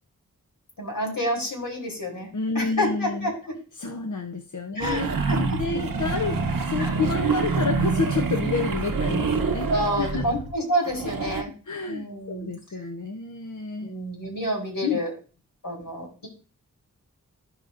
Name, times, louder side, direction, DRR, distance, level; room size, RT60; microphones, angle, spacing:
voice 1, 0.8-2.3 2.5-3.5 4.7-5.0 5.3-5.8 6.8-7.0 9.7-11.5 11.9-12.5 13.8-15.1 15.6-16.3, equal, 80° left, 0 dB, 3.3 m, -28 dB
voice 2, 2.3-3.3 3.8-6.4 6.7-9.7 10.0-10.2 11.7-13.9 14.8-15.0, left 4 dB, 60° left, 6 dB, 0.8 m, -29 dB
sound 1, 4.8-10.6 10.8-11.4, right 4 dB, 80° right, 0.9 m, -26 dB
15.0 x 5.1 x 2.5 m, 0.37 s
wide cardioid pair, 55°, 33 cm